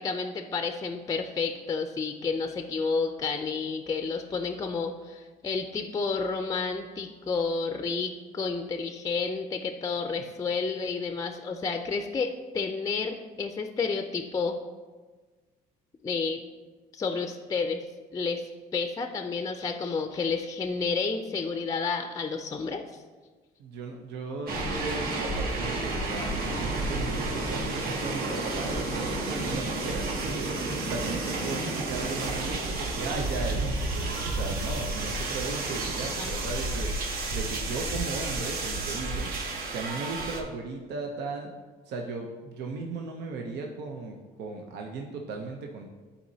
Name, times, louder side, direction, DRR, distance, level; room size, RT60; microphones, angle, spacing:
voice 1, 0.0-14.6 16.0-16.4 16.9-17.8 18.1-18.4 18.7-23.0 36.2-36.3, left 4 dB, 20° left, 5 dB, 0.4 m, -30 dB
voice 2, 23.6-30.5 30.9-36.9 37.3-39.3 39.7-41.5 41.9-45.9, right 3 dB, 80° right, 2 dB, 0.7 m, -36 dB
sound 1, 24.5-40.4, right 2 dB, 60° right, 1.1 m, -31 dB
11.5 x 4.2 x 2.7 m, 1.3 s
cardioid pair, 110°, 17 cm